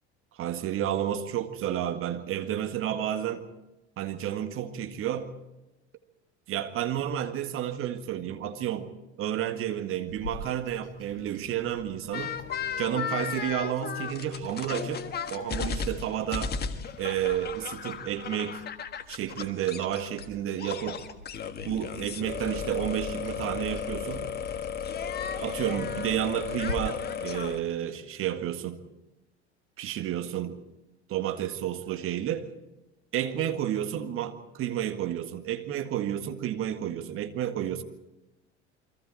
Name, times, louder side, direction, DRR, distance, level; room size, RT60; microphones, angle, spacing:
voice 1, 0.3-3.5 4.0-5.3 6.5-8.9 9.2-12.3 12.8-15.0 15.3-16.6 17.0-18.6 19.1-21.0 21.7-24.3 25.4-28.8 29.8-30.6 31.1-32.5 33.1-37.8, right 11 dB, 40° right, 8 dB, 1.8 m, -31 dB
sound 1, 10.1-26.7, left 3 dB, 80° left, 1.7 m, -48 dB
sound 2, 12.1-20.3 20.6-27.6, left 6 dB, 30° left, 1.5 m, -35 dB
29.0 x 22.5 x 4.3 m, 1.0 s
figure-of-eight pair, 70°, 34 cm